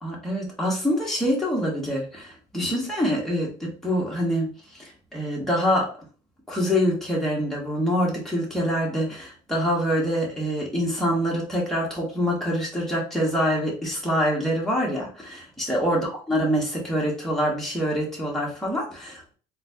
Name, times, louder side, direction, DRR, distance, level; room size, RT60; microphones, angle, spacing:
voice 1, 0.0-4.5 4.8-5.9 6.5-19.2, equal, ahead, -4 dB, 1.3 m, -25 dB
3.9 x 2.3 x 2.7 m, 0.39 s
cardioid pair, 110°, 17 cm